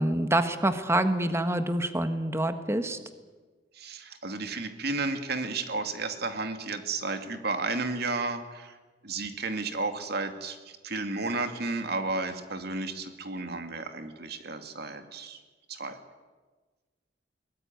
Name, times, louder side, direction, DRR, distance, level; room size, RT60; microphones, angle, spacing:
voice 1, 0.0-3.0, right 1 dB, 15° right, 9 dB, 1.4 m, -26 dB
voice 2, 3.7-8.8 9.0-10.6 10.8-15.4 15.7-16.0, right 3 dB, 60° right, 7 dB, 2.2 m, -32 dB
22.5 x 19.0 x 9.4 m, 1.3 s
head